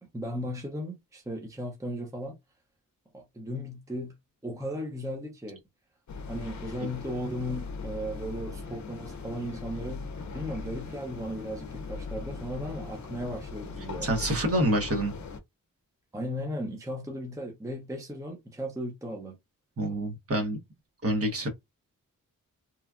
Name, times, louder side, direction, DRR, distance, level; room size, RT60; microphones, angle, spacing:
voice 1, 0.0-2.3 3.1-4.1 4.4-5.6 6.3-10.1 10.3-14.1 16.1-19.4, equal, 10° right, 0.6 m, -36 dB
sound 1, 6.1-15.4, left 4 dB, 55° left, 0.6 m, -39 dB
voice 2, 14.0-15.1 19.8-20.6 21.0-21.5, right 1 dB, 45° right, 1.1 m, -27 dB
3.0 x 2.3 x 2.3 m
wide cardioid pair, 130°, 34 cm